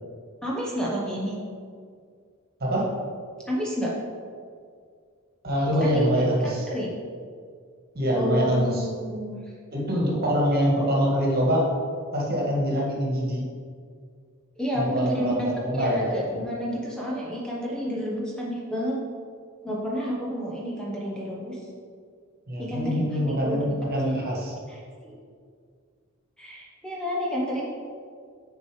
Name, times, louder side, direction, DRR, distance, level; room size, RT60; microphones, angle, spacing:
voice 1, 0.4-1.3 3.5-3.9 5.8-6.1 6.4-6.9 8.1-9.4 14.6-19.0 19.6-21.6 22.6-23.6 24.0-24.2 24.7-25.2 26.4-27.7, equal, 5° left, -5 dB, 0.9 m, -30 dB
voice 2, 2.6-2.9 5.4-6.7 7.9-8.9 9.7-11.7 12.1-13.5 14.7-16.1 22.5-24.6, equal, 45° right, -3 dB, 1.7 m, -24 dB
6.5 x 4.6 x 4.8 m, 2.1 s
head